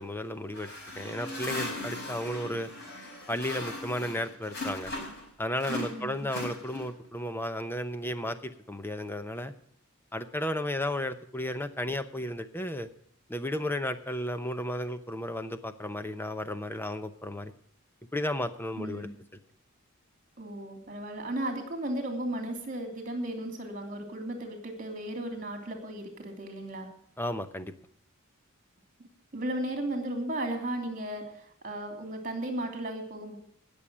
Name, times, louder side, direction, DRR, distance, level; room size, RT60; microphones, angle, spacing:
voice 1, 0.0-2.7 3.3-4.9 5.4-9.5 10.1-12.9 13.3-17.5 18.1-19.1 27.2-27.7, left 1 dB, 10° left, 10 dB, 0.7 m, -33 dB
sound 1, 0.5-5.3 5.6-7.1, left 2 dB, 50° left, 5.3 m, -38 dB
voice 2, 5.7-6.3 18.8-19.1 20.4-26.9 29.3-33.4, right 1 dB, 40° right, 3 dB, 2.9 m, -35 dB
18.5 x 7.1 x 6.2 m, 0.69 s
head